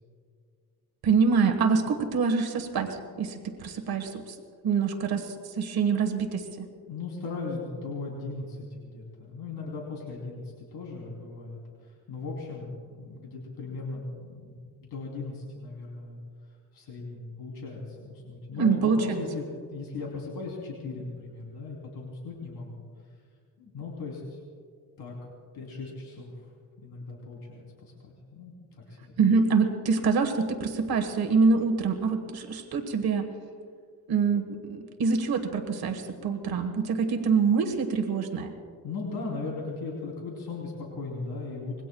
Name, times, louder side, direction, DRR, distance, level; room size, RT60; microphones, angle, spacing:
voice 1, 1.0-4.4 4.6-6.6 18.6-19.2 29.2-33.2 34.1-38.5, right 5 dB, 65° right, 4 dB, 1.6 m, -25 dB
voice 2, 6.9-16.2 16.7-19.4 19.7-22.8 23.6-24.4 25.0-25.1 25.5-26.5 26.8-29.1 38.8-41.8, left 3 dB, 75° left, -3 dB, 3.4 m, -38 dB
26.0 x 21.5 x 2.3 m, 2.1 s
wide cardioid pair, 160°, 39 cm